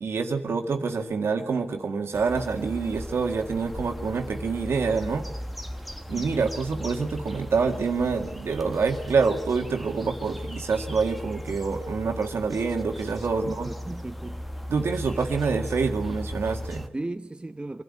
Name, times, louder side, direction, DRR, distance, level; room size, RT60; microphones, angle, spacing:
voice 1, 0.0-5.3 6.1-13.7 14.7-16.9, right 5 dB, 80° right, 1.9 m, -26 dB
sound 1, 2.1-16.9, equal, ahead, 1.1 m, -37 dB
voice 2, 6.1-6.5 13.4-14.4 16.9-17.8, right 2 dB, 25° right, 1.0 m, -36 dB
24.5 x 12.5 x 8.6 m
cardioid pair, 60°, 4 cm